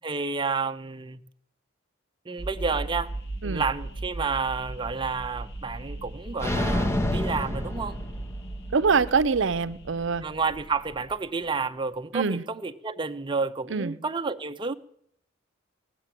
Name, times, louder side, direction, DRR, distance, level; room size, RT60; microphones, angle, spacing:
voice 1, 0.0-1.2 2.3-3.1 3.4-8.0 10.2-14.7, right 4 dB, 25° right, 8 dB, 0.5 m, -30 dB
sound 1, 2.4-11.6, right 2 dB, 60° left, 1.6 m, -38 dB
sound 2, 6.4-8.6, left 1 dB, 15° left, 0.8 m, -28 dB
voice 2, 8.7-10.2 12.1-12.4 13.7-14.0, right 5 dB, 65° right, 14 dB, 0.6 m, -24 dB
17.5 x 6.8 x 9.0 m, 0.68 s
head